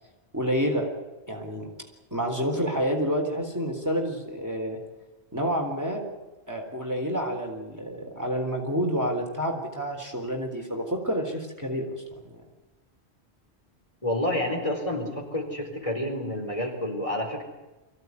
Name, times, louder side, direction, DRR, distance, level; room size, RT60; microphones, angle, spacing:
voice 1, 0.3-0.9 1.3-1.7 2.1-4.8 5.3-6.0 6.5-12.4, equal, 15° right, 1 dB, 3.7 m, -29 dB
voice 2, 14.0-17.4, left 1 dB, 30° left, 1 dB, 4.5 m, -29 dB
24.5 x 16.5 x 9.6 m, 1.1 s
omnidirectional pair, 1.1 m